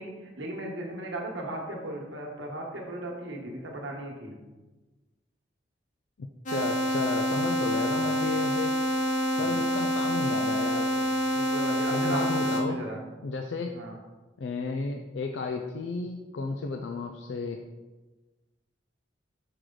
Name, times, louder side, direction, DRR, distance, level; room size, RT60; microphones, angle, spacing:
voice 1, 0.0-4.3 7.7-8.2 9.4-9.6 11.3-13.0 13.7-13.9, right 1 dB, 85° right, 0 dB, 1.3 m, -37 dB
voice 2, 6.5-8.7 9.4-11.0 11.9-12.8 13.2-13.7 14.4-17.6, left 4 dB, 75° left, 3 dB, 0.4 m, -33 dB
sound 1, 6.5-12.6, equal, 45° left, 1.0 m, -27 dB
6.2 x 4.8 x 3.8 m, 1.2 s
head